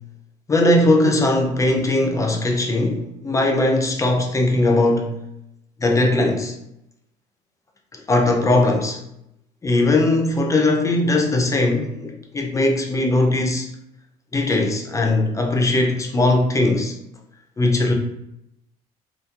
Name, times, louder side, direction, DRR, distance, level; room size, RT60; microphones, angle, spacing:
voice 1, 0.5-5.1 5.8-6.6 7.9-9.0 9.6-13.7 14.3-16.9 17.6-17.9, left 2 dB, 20° left, 2 dB, 0.5 m, -19 dB
2.9 x 2.5 x 2.4 m, 0.81 s
cardioid pair, 100°, 15 cm